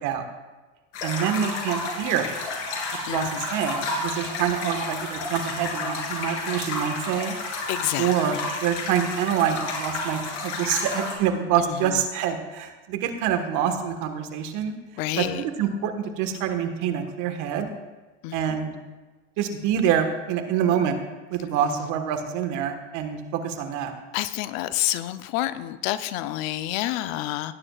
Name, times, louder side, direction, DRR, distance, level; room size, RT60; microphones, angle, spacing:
sound 1, 0.9-11.1, left 3 dB, 75° left, 3.2 m, -31 dB
voice 1, 1.0-2.3 3.0-7.3 8.0-14.7 15.2-17.7 18.3-18.8 19.4-21.0 21.3-23.9, right 8 dB, 55° right, 6 dB, 1.5 m, -26 dB
voice 2, 7.7-8.1 15.0-15.4 18.2-18.6 24.1-27.5, left 15 dB, 60° left, 13 dB, 0.7 m, -28 dB
17.5 x 9.9 x 2.4 m, 1.2 s
hypercardioid pair, 100°, 36 cm